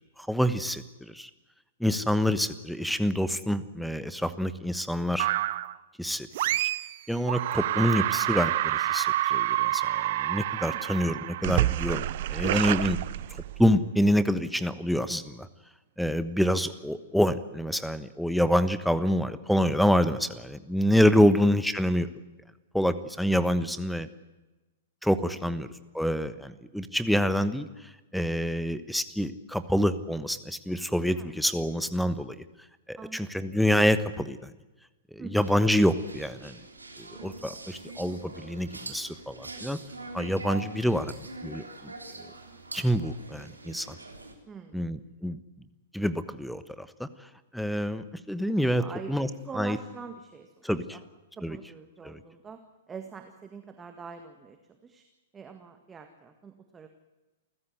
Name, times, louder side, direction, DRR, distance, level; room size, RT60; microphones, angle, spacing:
voice 1, 0.3-0.8 1.1-1.3 1.8-5.3 6.0-6.3 6.6-6.7 7.1-13.0 13.6-15.5 16.0-22.1 22.7-24.1 25.0-25.7 25.9-27.7 28.1-32.4 32.9-34.5 35.1-36.6 37.0-39.8 40.1-41.9 42.7-44.0 44.7-45.4 45.9-47.1 47.5-49.3 49.6-49.8 50.6-51.0 51.4-51.6 52.0-52.2, equal, ahead, 14 dB, 1.2 m, -27 dB
sound 1, 5.2-5.8 6.3-7.0 7.3-13.7, right 15 dB, 50° right, 0.6 m, -28 dB
voice 2, 33.0-33.5 35.2-35.5 44.5-44.9 48.8-50.5 50.9-51.0 51.4-52.6 52.9-55.0 55.3-56.9, right 5 dB, 15° right, 6 dB, 1.8 m, -44 dB
sound 2, 35.4-44.3, right 2 dB, 80° right, 3.5 m, -43 dB
28.5 x 15.5 x 8.0 m, 1.1 s
figure-of-eight pair, 105°, 0 cm